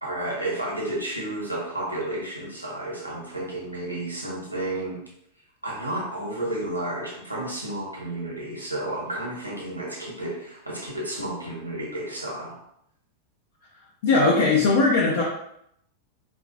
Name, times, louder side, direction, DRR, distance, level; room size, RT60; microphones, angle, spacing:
voice 1, 0.0-5.0 5.6-12.6, right 1 dB, 90° right, -3 dB, 0.9 m, -31 dB
voice 2, 14.0-15.2, left 3 dB, 60° left, -3 dB, 0.6 m, -19 dB
4.5 x 2.4 x 2.2 m, 0.74 s
figure-of-eight pair, 90°, 0 cm